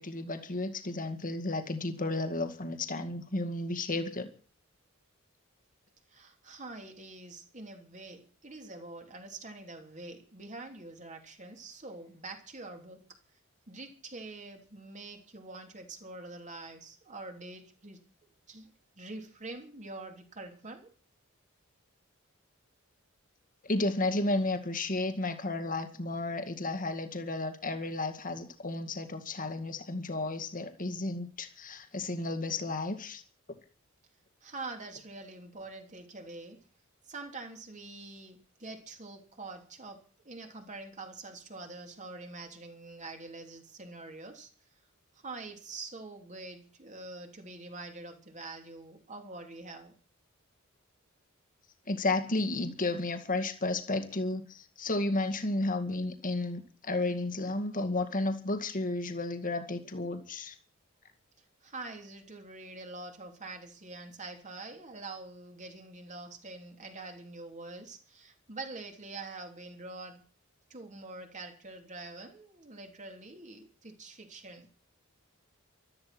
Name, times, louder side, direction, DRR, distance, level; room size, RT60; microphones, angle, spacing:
voice 1, 0.0-4.3 23.6-33.2 51.9-60.6, left 2 dB, 40° left, 7 dB, 2.1 m, -32 dB
voice 2, 6.1-13.0 13.7-18.0 18.5-18.7 19.0-20.9 34.4-36.6 37.0-44.7 45.2-49.9 61.6-70.2 70.7-74.7, right 3 dB, 35° right, 4 dB, 3.3 m, -45 dB
14.5 x 13.5 x 6.1 m, 0.39 s
head